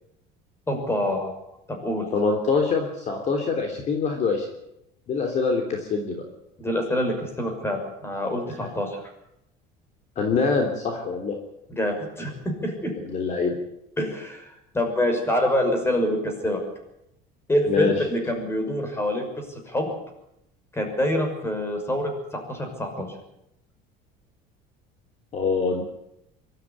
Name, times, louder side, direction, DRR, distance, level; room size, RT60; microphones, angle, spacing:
voice 1, 0.7-1.4 1.7-2.0 6.6-9.0 11.7-12.3 12.6-12.9 14.0-16.6 17.5-19.9 20.7-23.1, left 1 dB, 15° left, 4 dB, 6.2 m, -26 dB
voice 2, 2.1-4.5 5.1-6.2 10.1-11.4 13.1-13.6 17.7-17.9 25.3-25.8, left 4 dB, 40° left, 2 dB, 3.3 m, -24 dB
24.0 x 13.0 x 9.9 m, 0.82 s
cardioid pair, 140°, 18 cm